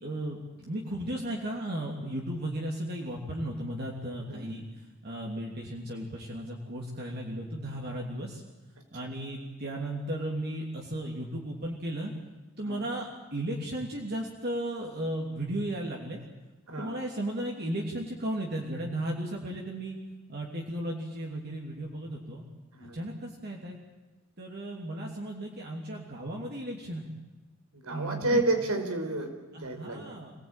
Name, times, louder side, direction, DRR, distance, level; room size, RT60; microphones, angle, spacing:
voice 1, 0.0-4.6 5.0-8.4 8.9-12.1 12.6-16.2 16.8-20.0 20.3-22.4 22.8-23.8 24.4-27.1 27.9-28.4 29.5-30.3, right 1 dB, 45° right, -1 dB, 3.0 m, -35 dB
voice 2, 27.7-30.2, right 2 dB, 85° right, 5 dB, 4.6 m, -31 dB
26.0 x 19.5 x 9.1 m, 1.2 s
head